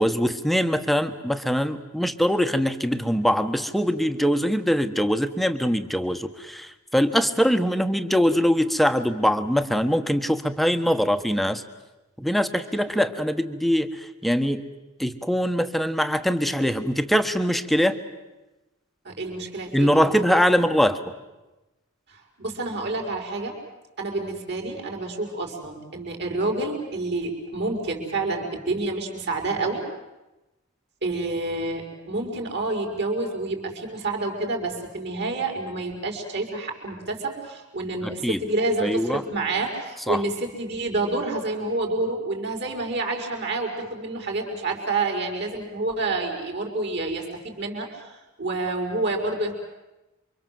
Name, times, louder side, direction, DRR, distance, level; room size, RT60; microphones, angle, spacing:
voice 1, 0.0-11.6 12.2-14.6 15.0-18.0 19.7-21.0 38.0-38.4 38.8-39.2 40.1-40.2, equal, ahead, 9 dB, 1.2 m, -22 dB
voice 2, 19.0-20.1 22.1-23.5 24.0-29.8 31.0-48.1 48.4-49.5, right 2 dB, 55° right, 3 dB, 5.3 m, -28 dB
28.5 x 25.0 x 7.8 m, 1.1 s
head